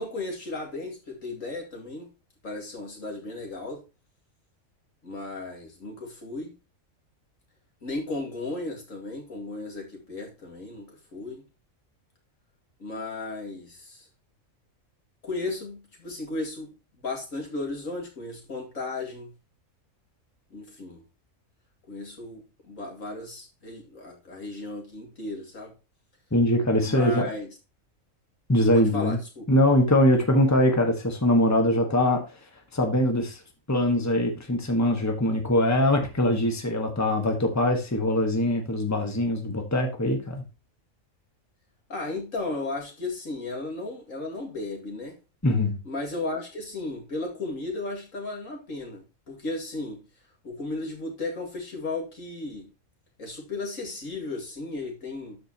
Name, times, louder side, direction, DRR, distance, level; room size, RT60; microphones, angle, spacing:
voice 1, 0.0-2.1 2.4-3.8 5.0-6.5 7.8-11.4 12.8-14.1 15.2-16.7 17.0-19.3 20.5-21.0 21.9-25.7 26.8-27.5 28.7-29.5 41.9-45.2 45.8-50.0 50.4-52.7 53.2-55.4, left 2 dB, 70° left, 2.8 m, -35 dB
voice 2, 26.3-27.3 28.5-29.2 29.5-32.2 32.7-33.4 33.7-40.4 45.4-45.8, left 1 dB, 10° left, 1.5 m, -22 dB
12.5 x 5.1 x 2.9 m
omnidirectional pair, 1.4 m